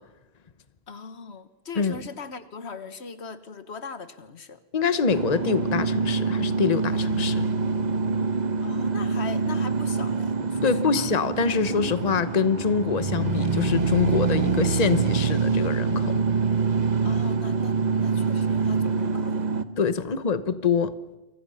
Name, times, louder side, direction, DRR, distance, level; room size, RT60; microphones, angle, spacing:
voice 1, 0.9-4.6 8.6-11.1 17.0-19.5 19.9-20.2, left 5 dB, 90° left, 12 dB, 1.6 m, -40 dB
voice 2, 4.7-7.5 10.6-16.2 19.8-20.9, left 5 dB, 40° left, 13 dB, 1.1 m, -25 dB
sound 1, 5.1-19.6, right 4 dB, 45° right, 1.1 m, -25 dB
28.5 x 24.5 x 5.7 m, 1.0 s
omnidirectional pair, 1.1 m